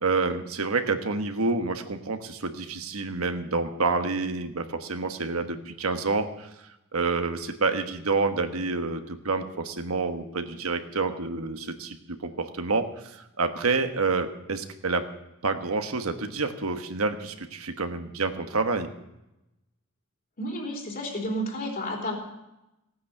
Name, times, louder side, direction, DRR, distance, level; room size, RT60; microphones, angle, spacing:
voice 1, 0.0-6.5 6.9-12.0 12.2-15.0 15.4-18.9, right 3 dB, 90° right, 7 dB, 1.3 m, -28 dB
voice 2, 20.4-22.2, equal, 45° left, 0 dB, 3.6 m, -31 dB
16.5 x 9.4 x 6.7 m, 0.92 s
head